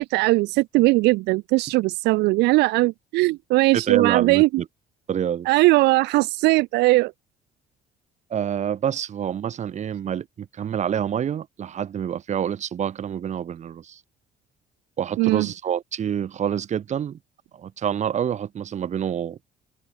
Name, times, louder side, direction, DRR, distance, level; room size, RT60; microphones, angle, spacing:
voice 1, 0.0-4.6 5.5-7.1 15.2-15.5, right 21 dB, 80° right, 0.4 m, -19 dB
voice 2, 3.7-4.6 5.1-5.5 8.3-14.0 15.0-17.2 17.5-19.4, right 9 dB, 45° right, 1.2 m, -27 dB
open air
cardioid pair, 110°, 17 cm